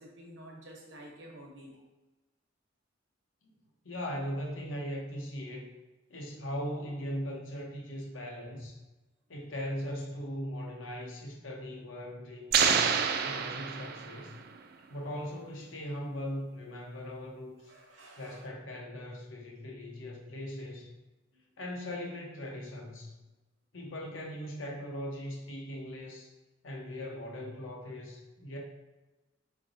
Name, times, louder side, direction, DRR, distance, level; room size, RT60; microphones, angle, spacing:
voice 1, 0.0-1.8 17.6-18.5 21.3-21.4, right 1 dB, 75° right, -1 dB, 0.9 m, -50 dB
voice 2, 3.8-5.7 6.1-8.8 9.3-13.0 13.2-14.3 14.9-17.6 18.2-20.9 21.6-23.1 23.7-26.3 26.6-28.6, equal, 80° left, 0 dB, 0.8 m, -39 dB
sound 1, 12.5-14.4, right 6 dB, 50° right, 0.3 m, -27 dB
3.9 x 3.3 x 2.6 m, 1.1 s
head